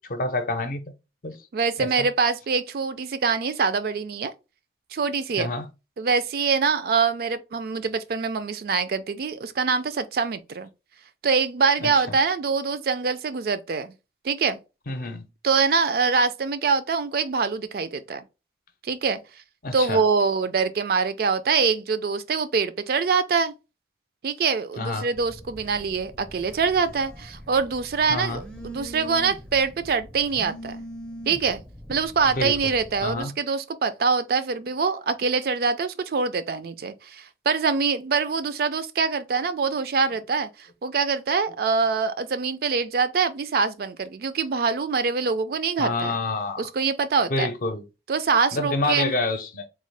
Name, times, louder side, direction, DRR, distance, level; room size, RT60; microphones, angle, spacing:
voice 1, 0.1-0.8 1.2-1.4 1.8-2.1 5.4-5.7 11.8-11.9 14.9-15.2 19.6-20.0 24.8-25.1 28.1-28.4 31.2-31.3 32.3-32.5 33.0-33.3 45.8-46.7 47.3-47.8 48.5-49.7, left 2 dB, 50° left, 0.6 m, -27 dB
voice 2, 1.5-4.3 4.9-5.5 6.0-10.7 11.2-13.9 14.2-14.6 15.4-18.2 18.8-19.2 19.7-23.5 24.2-30.8 31.3-31.6 31.9-46.1 46.6-47.5 48.1-49.1, right 5 dB, 55° right, 0.4 m, -24 dB
Telephone, 25.1-33.2, equal, 5° left, 0.5 m, -42 dB
3.6 x 2.3 x 3.2 m
head